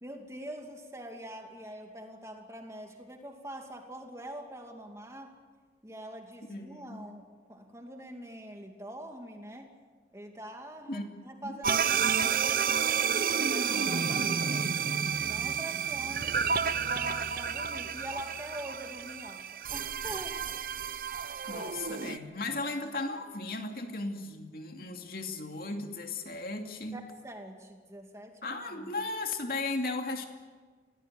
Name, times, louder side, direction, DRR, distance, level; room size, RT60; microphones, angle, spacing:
voice 1, 0.0-5.3 5.8-9.7 10.1-14.7 15.2-16.5 16.8-20.4 21.5-21.8 22.8-23.0 26.9-28.9, right 1 dB, 15° right, 3 dB, 2.5 m, -44 dB
voice 2, 6.5-7.1 10.9-11.0 11.4-11.6 21.5-27.0 28.4-30.3, left 2 dB, 55° left, 4 dB, 2.5 m, -36 dB
sound 1, 11.6-22.2, right 6 dB, 50° right, 0.8 m, -30 dB
24.0 x 17.5 x 9.2 m, 1.5 s
head